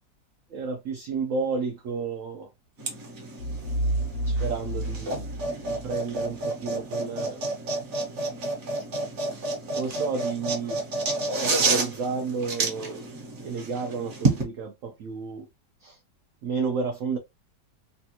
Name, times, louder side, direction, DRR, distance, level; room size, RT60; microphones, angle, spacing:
voice 1, 0.5-2.5 4.2-5.3 5.5-7.4 9.8-10.8 11.4-13.1 13.4-15.5 15.8-16.0 16.4-17.2, right 4 dB, 70° right, 0.7 m, -31 dB
sound 1, 2.8-14.4, right 3 dB, 50° right, 1.1 m, -30 dB
sound 2, 3.4-6.3, right 1 dB, 75° left, 1.1 m, -30 dB
3.2 x 2.3 x 2.8 m
omnidirectional pair, 1.8 m